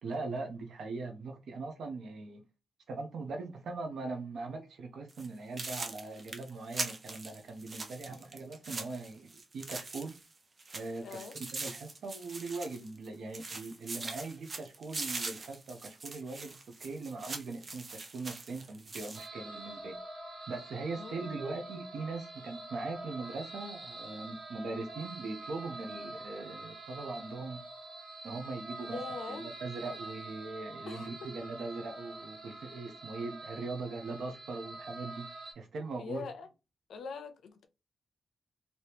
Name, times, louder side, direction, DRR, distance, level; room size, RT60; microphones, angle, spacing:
voice 1, 0.0-2.4 2.9-10.1 10.7-11.2 11.5-20.0 20.5-27.6 28.2-29.0 29.3-35.3 35.6-36.3, right 3 dB, 80° right, 0.5 m, -40 dB
sound 1, 5.1-5.3 5.6-10.3 10.6-13.1 13.3-19.3, right 3 dB, 35° right, 0.6 m, -42 dB
voice 2, 11.0-11.4 20.9-21.5 28.8-29.6 30.9-31.1 35.9-36.5 36.9-37.6, left 4 dB, 90° left, 0.5 m, -43 dB
sound 2, 19.2-35.5, right 2 dB, 50° right, 1.1 m, -45 dB
2.9 x 2.7 x 3.3 m
wide cardioid pair, 145°, 0 cm